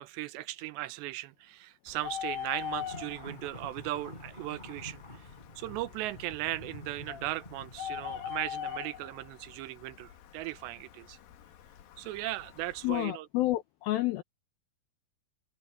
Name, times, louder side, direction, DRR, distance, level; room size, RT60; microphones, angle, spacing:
voice 1, 0.0-5.0 5.6-11.2 12.0-13.3, right 16 dB, 90° right, 3.0 m, -37 dB
Bird, 1.9-13.0, left 10 dB, 65° left, 3.0 m, -43 dB
sound 1, 2.7-8.4, left 1 dB, 10° left, 7.8 m, -48 dB
voice 2, 12.8-14.2, left 17 dB, 85° left, 2.1 m, -29 dB
omnidirectional pair, 5.0 m